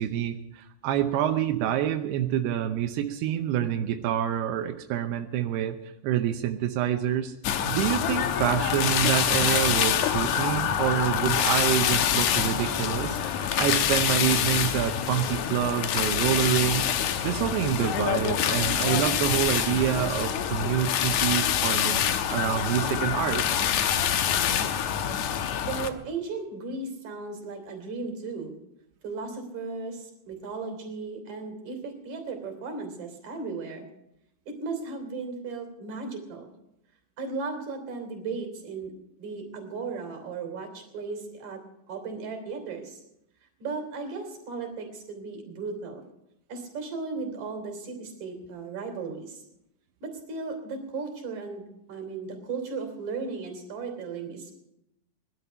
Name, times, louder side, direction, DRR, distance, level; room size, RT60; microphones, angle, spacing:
voice 1, 0.0-5.8 6.0-7.3 7.7-16.9 17.2-23.4, right 11 dB, 90° right, 5 dB, 2.9 m, -27 dB
sound 1, 7.4-25.9, left 9 dB, 75° left, 1.7 m, -26 dB
voice 2, 25.6-28.5 29.0-33.9 34.5-36.5 37.2-38.9 39.2-41.6 41.9-43.0 43.6-46.0 46.5-49.4 50.0-54.5, right 4 dB, 50° right, 4 dB, 4.4 m, -36 dB
20.0 x 12.0 x 5.7 m, 0.85 s
omnidirectional pair, 4.5 m